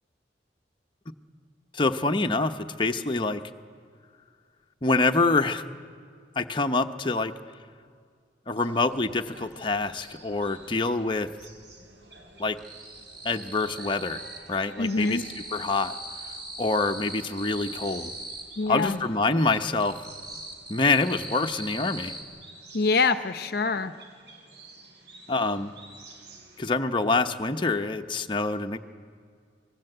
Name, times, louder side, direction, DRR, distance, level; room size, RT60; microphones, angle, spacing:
voice 1, 1.7-3.4 4.8-5.6 6.4-7.3 8.5-11.3 12.4-12.6 13.2-14.2 14.5-15.2 15.5-15.9 16.6-18.1 18.7-20.0 20.7-22.1 25.3-25.7 26.6-28.8, left 3 dB, 25° left, 5 dB, 0.9 m, -26 dB
sound 1, 8.6-26.6, right 3 dB, 70° right, 4.9 m, -52 dB
sound 2, 9.5-10.6 10.9-11.6 11.9-14.5 14.8-19.0 19.4-22.2, right 1 dB, 25° right, 4.1 m, -40 dB
voice 2, 14.8-15.3 18.6-19.0 22.7-23.9, left 4 dB, 60° left, 11 dB, 0.7 m, -25 dB
26.5 x 19.5 x 7.9 m, 2.1 s
head